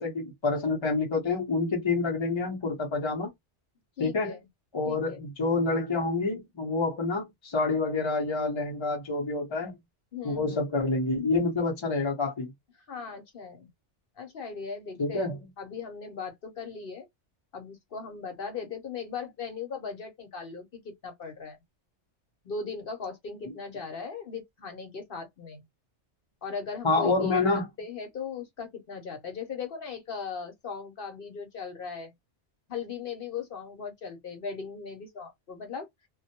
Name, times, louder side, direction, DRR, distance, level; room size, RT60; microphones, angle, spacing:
voice 1, 0.0-3.3 4.0-4.4 4.7-9.7 10.2-12.5 15.0-15.4 26.8-27.7, left 3 dB, 35° left, 0.5 m, -27 dB
voice 2, 4.0-4.4 4.8-5.2 10.1-10.6 12.9-13.7 14.2-15.3 15.6-17.1 17.5-21.6 22.4-25.6 26.4-32.1 32.7-35.9, left 5 dB, 55° left, 0.8 m, -38 dB
2.2 x 2.0 x 2.8 m
omnidirectional pair, 1.2 m